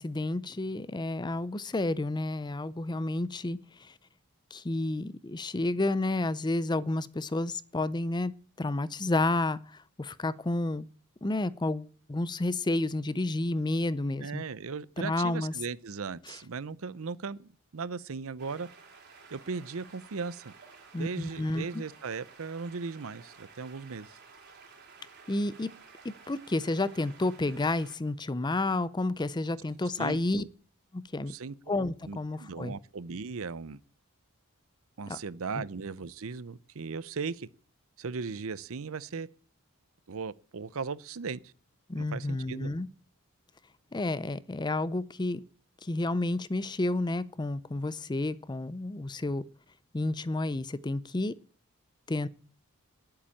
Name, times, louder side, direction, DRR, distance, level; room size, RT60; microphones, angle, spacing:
voice 1, 0.0-3.9 4.5-8.3 8.6-10.8 11.2-14.4 15.0-15.5 20.9-21.8 25.3-25.7 26.0-30.4 30.9-31.3 31.7-32.7 35.1-35.2 41.9-42.9 43.9-45.4 45.8-49.4 49.9-51.3 52.1-52.3, left 2 dB, 20° left, 0.5 m, -30 dB
voice 2, 14.2-18.7 19.3-20.5 21.0-24.1 30.0-30.5 31.3-31.5 32.1-33.8 35.0-37.5 38.0-39.3 40.1-41.5 41.9-42.7, right 5 dB, 65° right, 0.6 m, -37 dB
sound 1, 18.4-28.0, right 5 dB, 50° right, 3.2 m, -53 dB
10.5 x 8.7 x 8.5 m
head